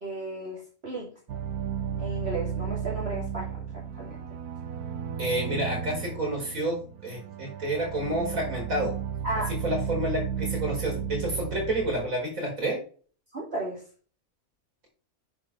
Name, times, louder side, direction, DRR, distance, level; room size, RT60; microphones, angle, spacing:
voice 1, 0.0-1.1 2.0-4.2 9.2-9.5 13.3-13.8, right 2 dB, 40° right, -4 dB, 2.9 m, -34 dB
sound 1, 1.3-12.1, right 7 dB, 75° right, 1.4 m, -34 dB
voice 2, 5.2-9.0 9.5-12.8, right 1 dB, 60° right, -1 dB, 5.2 m, -29 dB
9.7 x 5.2 x 6.2 m, 0.41 s
omnidirectional pair, 1.6 m